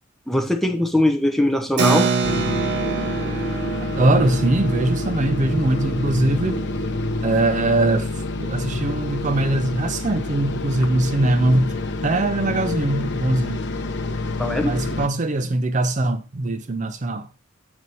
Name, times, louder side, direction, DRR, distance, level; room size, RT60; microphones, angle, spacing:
voice 1, 0.3-2.1 14.4-14.8, left 1 dB, ahead, 0.7 m, -21 dB
Keyboard (musical), 1.8-7.8, right 4 dB, 55° right, 0.9 m, -27 dB
sound 1, 2.2-15.1, left 2 dB, 55° left, 0.7 m, -27 dB
voice 2, 4.0-6.6 7.2-11.8 12.0-13.6 14.6-17.3, right 2 dB, 35° right, 0.5 m, -21 dB
7.8 x 5.5 x 4.0 m
head